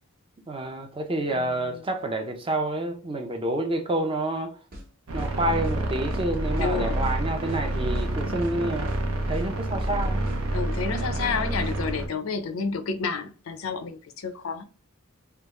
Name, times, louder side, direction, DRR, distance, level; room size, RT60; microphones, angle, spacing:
voice 1, 0.5-4.5 5.1-8.9 9.3-10.3, right 1 dB, 25° right, 0.6 m, -28 dB
voice 2, 1.3-1.8 6.6-6.9 10.5-14.6, left 5 dB, 70° left, 0.5 m, -30 dB
sound 1, 4.7-4.9 5.2-5.3 5.6-5.8 6.1-6.7 7.0-7.2 7.5-7.6 7.9-8.6 8.9-9.0 9.3-9.5 9.8-10.4 10.7-10.9 11.2-11.3 11.6-12.0, equal, 45° right, 1.0 m, -41 dB
sound 2, 5.1-12.1, right 1 dB, 75° right, 0.7 m, -28 dB
3.4 x 2.3 x 3.0 m
head